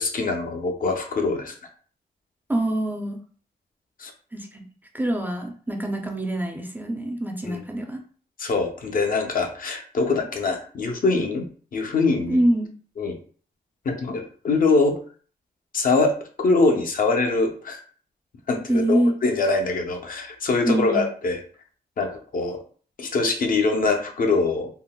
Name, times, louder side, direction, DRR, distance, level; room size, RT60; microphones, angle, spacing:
voice 1, 0.0-1.5 4.0-4.1 7.4-7.6 8.4-12.4 13.0-13.2 13.9-15.0 15.7-17.8 18.5-21.4 22.0-22.6 23.0-24.7, left 3 dB, 55° left, 3 dB, 0.6 m, -23 dB
voice 2, 2.5-3.2 4.3-4.6 4.9-8.0 12.3-12.7 18.7-19.2 20.6-21.1, right 1 dB, 10° right, 2 dB, 0.4 m, -24 dB
3.7 x 2.0 x 2.2 m, 0.43 s
wide cardioid pair, 115°, 17 cm